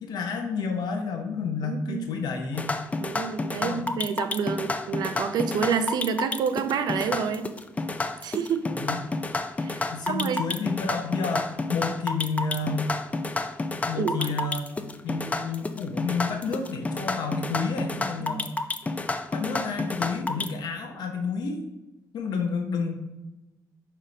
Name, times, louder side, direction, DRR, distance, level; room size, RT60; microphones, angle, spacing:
voice 1, 0.0-2.8 3.6-3.9 8.7-9.0 9.9-12.9 13.7-14.7 15.0-18.5 19.3-21.6 22.1-23.0, left 4 dB, 85° left, 4 dB, 0.9 m, -30 dB
voice 2, 1.6-2.1 3.0-7.5 8.2-8.7 9.6-10.4 14.0-14.3 18.2-18.4, right 6 dB, 85° right, 9 dB, 0.6 m, -28 dB
sound 1, 2.5-20.5, left 3 dB, 20° left, 0.4 m, -30 dB
5.0 x 4.4 x 5.2 m, 0.99 s
cardioid pair, 115°, 7 cm